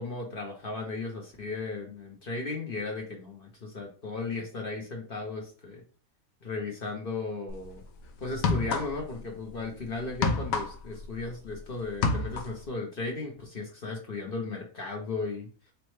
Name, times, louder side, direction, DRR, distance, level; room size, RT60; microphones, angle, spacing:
voice 1, 0.0-5.8 6.4-7.8 8.2-15.5, left 3 dB, 45° left, 0 dB, 0.9 m, -36 dB
sound 1, 7.5-7.7 8.3-9.2 9.5-11.6 11.9-12.6, left 4 dB, 85° left, 1.1 m, -29 dB
4.1 x 3.2 x 3.2 m, 0.38 s
omnidirectional pair, 1.4 m